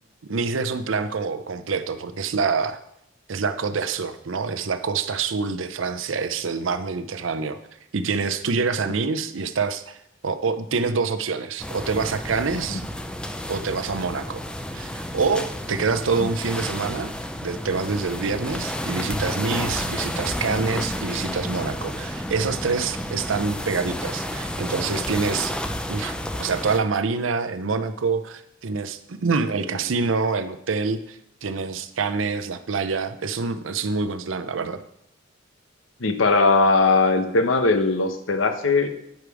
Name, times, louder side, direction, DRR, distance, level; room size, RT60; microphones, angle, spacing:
voice 1, 0.3-2.8 3.3-7.6 7.9-10.0 10.2-12.8 13.5-14.4 14.7-17.1 17.4-25.5 25.9-34.8, right 4 dB, 75° right, 10 dB, 0.6 m, -26 dB
sound 1, 11.6-26.8, left 1 dB, 5° left, 0.5 m, -31 dB
voice 2, 36.0-38.9, left 3 dB, 85° left, 7 dB, 0.9 m, -19 dB
9.2 x 5.1 x 4.8 m, 0.76 s
head